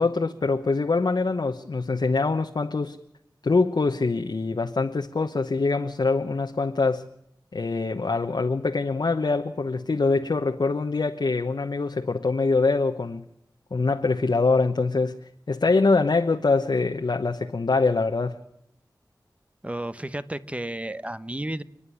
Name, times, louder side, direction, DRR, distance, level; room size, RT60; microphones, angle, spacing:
voice 1, 0.0-3.0 3.4-7.1 7.5-13.2 13.7-15.2 15.5-18.4, left 3 dB, 75° left, 4 dB, 1.1 m, -24 dB
voice 2, 19.6-21.6, right 1 dB, 15° right, 13 dB, 1.0 m, -32 dB
30.0 x 10.0 x 10.0 m, 0.80 s
wide cardioid pair, 65°, 8 cm